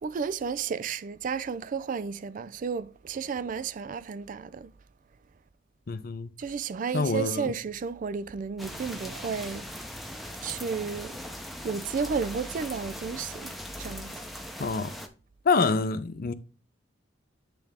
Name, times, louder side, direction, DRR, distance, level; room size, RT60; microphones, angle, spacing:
voice 1, 0.0-4.7 6.4-9.7 10.4-11.2 11.6-14.2, right 5 dB, 45° right, 0.3 m, -32 dB
voice 2, 5.9-6.3 6.9-7.5 14.6-14.9 15.4-16.3, left 4 dB, 50° left, 0.6 m, -26 dB
sound 1, 8.6-15.1, equal, ahead, 0.7 m, -40 dB
9.1 x 3.4 x 3.5 m
head